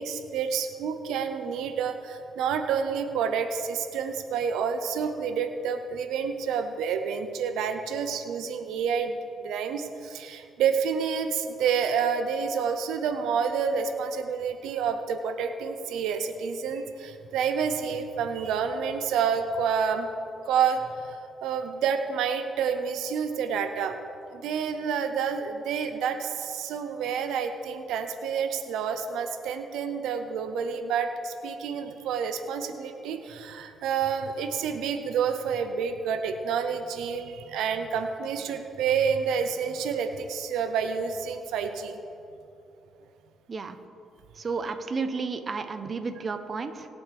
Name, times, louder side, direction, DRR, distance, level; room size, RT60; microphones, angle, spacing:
voice 1, 0.0-20.1 20.5-24.0 24.3-42.0, right 6 dB, 85° right, 7 dB, 0.7 m, -29 dB
voice 2, 44.4-46.9, right 4 dB, 40° right, 9 dB, 0.8 m, -32 dB
22.0 x 7.7 x 3.5 m, 2.7 s
cardioid pair, 90°, 0 cm